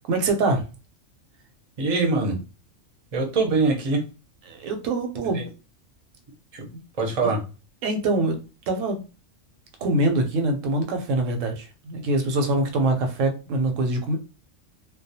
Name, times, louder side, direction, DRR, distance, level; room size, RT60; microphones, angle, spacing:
voice 1, 0.1-0.6 4.5-5.4 6.7-6.8 7.2-7.3 7.8-8.4 8.7-9.0 9.8-14.2, right 2 dB, 85° right, 5 dB, 1.0 m, -24 dB
voice 2, 1.8-2.4 3.1-4.0 5.3-5.4 6.5-6.6 7.0-7.4, right 3 dB, 40° right, 0 dB, 0.6 m, -23 dB
2.3 x 2.0 x 2.6 m, 0.32 s
omnidirectional pair, 1.3 m